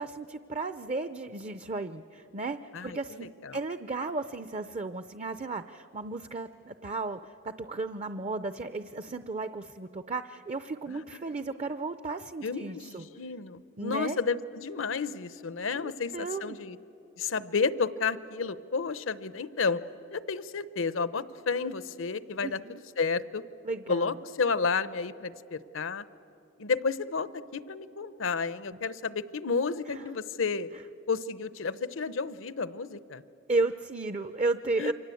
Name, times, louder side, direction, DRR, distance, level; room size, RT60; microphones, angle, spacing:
voice 1, 0.0-13.0 13.8-14.2 15.7-16.6 22.4-22.7 23.6-24.2 29.9-30.0 33.5-34.9, right 3 dB, 35° right, 11 dB, 0.6 m, -34 dB
voice 2, 2.7-3.6 10.9-11.2 12.4-16.8 17.2-19.8 20.1-23.4 23.9-26.0 26.6-30.7 31.1-33.2 34.8-34.9, left 4 dB, 75° left, 16 dB, 0.8 m, -31 dB
28.5 x 24.5 x 8.4 m, 2.8 s
head